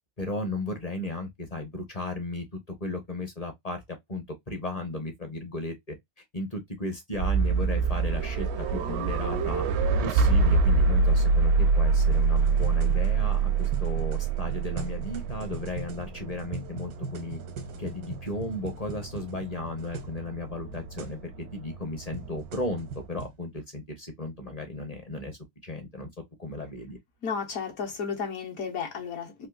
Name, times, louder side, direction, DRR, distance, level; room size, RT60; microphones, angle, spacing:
voice 1, 0.2-6.0 6.3-9.7 10.0-17.4 17.8-26.1 26.4-27.0, left 2 dB, 35° left, 0.7 m, -35 dB
sound 1, 7.1-23.1, right 4 dB, 70° right, 0.6 m, -26 dB
sound 2, 12.0-20.2 20.4-20.5 20.7-21.1 21.8-23.4, right 4 dB, 90° right, 1.3 m, -41 dB
voice 2, 27.2-29.5, left 6 dB, 70° left, 1.5 m, -33 dB
3.5 x 2.6 x 2.4 m
omnidirectional pair, 1.6 m